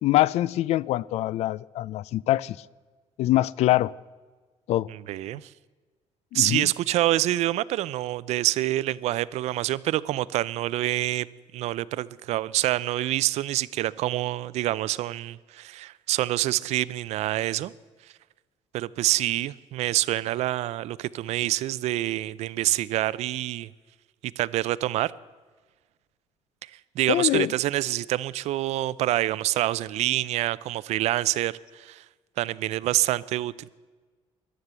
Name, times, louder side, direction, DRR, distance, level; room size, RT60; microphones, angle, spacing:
voice 1, 0.0-2.6 3.2-3.9 4.7-4.9 6.3-6.7 27.1-27.5, left 15 dB, 65° left, 0.4 m, -24 dB
voice 2, 4.9-5.5 6.3-11.3 11.5-17.7 18.7-23.7 24.4-25.1 26.6-26.7 27.0-32.0 32.4-33.7, right 15 dB, 70° right, 0.5 m, -26 dB
14.5 x 11.5 x 8.0 m
cardioid pair, 165°, 12 cm